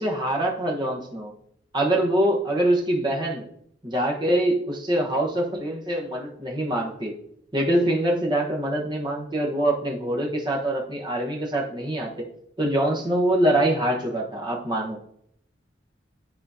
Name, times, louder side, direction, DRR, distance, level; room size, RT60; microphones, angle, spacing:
voice 1, 0.0-1.3 1.7-3.4 3.8-7.1 7.5-12.1 12.6-15.0, right 1 dB, 25° right, -1 dB, 1.3 m, -24 dB
10.5 x 4.2 x 2.8 m, 0.70 s
head